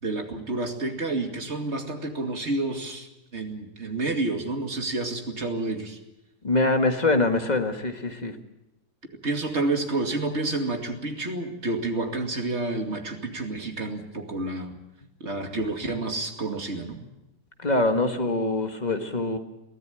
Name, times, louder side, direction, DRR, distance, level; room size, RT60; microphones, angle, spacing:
voice 1, 0.0-3.1 3.3-6.0 9.2-14.8 15.2-17.0, right 2 dB, 45° right, 4 dB, 2.7 m, -29 dB
voice 2, 6.4-8.4 17.6-19.4, left 2 dB, 25° left, 5 dB, 1.8 m, -24 dB
23.0 x 15.5 x 9.0 m, 0.95 s
omnidirectional pair, 1.7 m